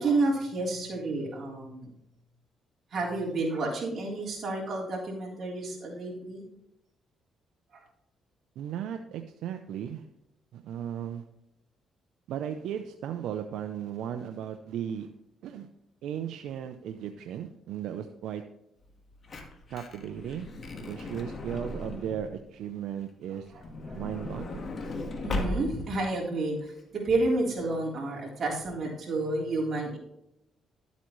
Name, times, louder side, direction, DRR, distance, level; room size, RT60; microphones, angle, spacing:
voice 1, 0.0-1.9 2.9-6.4 7.7-7.8 23.9-24.0 25.2-30.0, right 2 dB, 50° right, -3 dB, 3.5 m, -30 dB
voice 2, 8.6-10.0 10.5-11.2 12.3-15.1 15.4-15.7 16.0-18.4 19.7-20.5 20.8-23.6 23.9-24.7, right 9 dB, 80° right, 6 dB, 0.6 m, -36 dB
Truck / Door, 18.9-22.4 23.4-26.0 26.7-26.8 27.0-27.1, left 2 dB, 45° left, 1.6 m, -37 dB
12.0 x 8.2 x 3.1 m, 0.83 s
cardioid pair, 90°, 0 cm